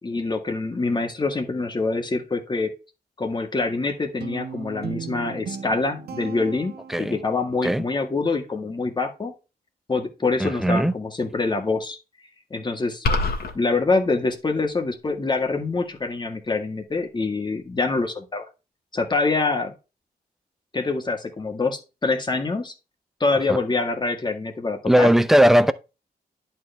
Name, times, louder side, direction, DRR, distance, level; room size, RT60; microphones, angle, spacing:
voice 1, 0.0-2.7 3.2-9.3 9.9-12.0 12.5-13.1 13.5-18.4 18.9-19.7 20.7-22.7 23.2-25.1, left 3 dB, 25° left, 1.8 m, -25 dB
Guitar, 4.2-7.5, right 7 dB, 75° right, 1.3 m, -37 dB
voice 2, 10.4-10.9 23.5-23.6 24.8-25.7, equal, ahead, 0.6 m, -18 dB
sound 1, 13.0-13.5, left 3 dB, 70° left, 2.1 m, -22 dB
11.0 x 4.7 x 3.3 m
wide cardioid pair, 130°, 17 cm